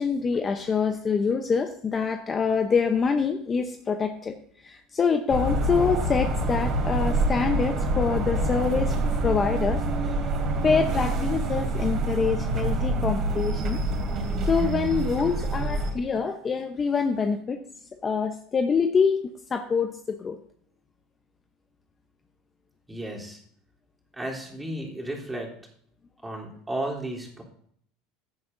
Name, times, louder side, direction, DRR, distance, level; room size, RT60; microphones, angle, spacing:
voice 1, 0.0-4.4 4.6-8.9 9.2-10.1 10.6-13.8 14.5-17.6 17.9-19.2 19.5-20.4, left 5 dB, 25° left, 7 dB, 0.8 m, -25 dB
sound 1, 5.3-15.9, right 1 dB, 45° right, 2.9 m, -26 dB
voice 2, 22.9-23.4 24.2-25.5 26.2-27.4, right 1 dB, 10° right, -2 dB, 3.4 m, -33 dB
15.5 x 9.6 x 2.7 m, 0.63 s
supercardioid pair, 115°, 0 cm